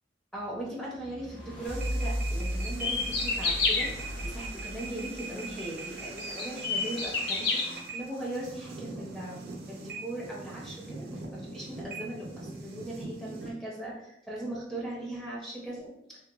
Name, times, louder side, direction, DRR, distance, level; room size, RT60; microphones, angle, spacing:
voice 1, 0.3-9.4 9.7-11.1 11.3-16.2, right 1 dB, ahead, -4 dB, 0.5 m, -39 dB
sound 1, 0.9-6.3, equal, 80° left, 1.0 m, -36 dB
sound 2, 1.7-13.5, right 3 dB, 60° right, 0.4 m, -41 dB
sound 3, 2.6-3.9 5.6-5.7 6.2-7.6, left 4 dB, 65° left, 0.5 m, -28 dB
3.0 x 2.1 x 2.3 m, 0.78 s
head